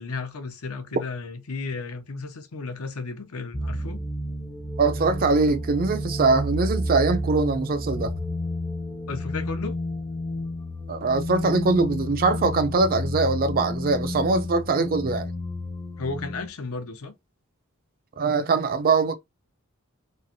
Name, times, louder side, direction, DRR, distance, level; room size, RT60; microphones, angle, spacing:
voice 1, 0.0-4.0 9.1-9.8 16.0-17.1, left 4 dB, 80° left, 0.7 m, -34 dB
sound 1, 3.5-16.5, left 1 dB, 15° left, 0.6 m, -31 dB
voice 2, 4.8-8.1 10.9-15.3 18.2-19.2, right 3 dB, 45° right, 0.4 m, -22 dB
3.1 x 2.5 x 2.6 m
head